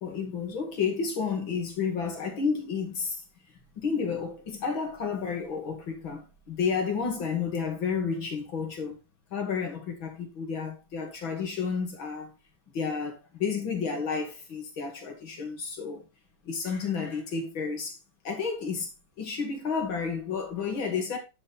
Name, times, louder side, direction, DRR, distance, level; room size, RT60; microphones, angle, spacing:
voice 1, 0.0-3.2 3.8-9.0 9.3-12.3 12.7-16.0 16.4-18.0 18.2-18.9 19.2-21.2, left 5 dB, 85° left, 3.0 m, -31 dB
10.0 x 6.6 x 4.2 m
omnidirectional pair, 2.1 m